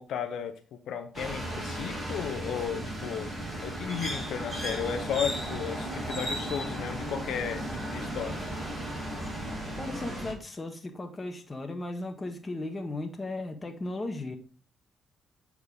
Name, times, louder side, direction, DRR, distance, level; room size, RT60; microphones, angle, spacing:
voice 1, 0.0-3.3 3.6-7.7 7.9-8.4, left 8 dB, 75° left, 5 dB, 0.8 m, -34 dB
sound 1, 1.1-10.3, right 1 dB, 20° right, 2.8 m, -35 dB
sound 2, 3.4-9.6, equal, 10° left, 1.0 m, -44 dB
voice 2, 9.8-14.4, left 2 dB, 25° left, 4 dB, 1.6 m, -36 dB
8.0 x 4.6 x 3.5 m, 0.38 s
cardioid pair, 90°, 0 cm